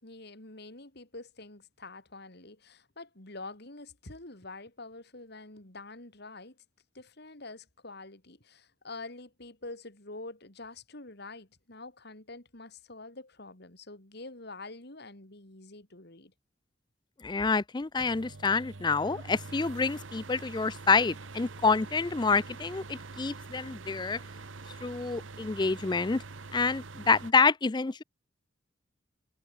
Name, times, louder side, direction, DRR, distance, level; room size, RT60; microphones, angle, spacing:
voice 1, 0.0-6.6 6.9-16.3, left 2 dB, 55° left, 3.3 m, -46 dB
voice 2, 17.2-24.2 24.8-26.2 26.5-28.0, left 4 dB, 20° left, 0.4 m, -27 dB
sound 1, 18.0-27.3, right 3 dB, 75° right, 1.1 m, -45 dB
head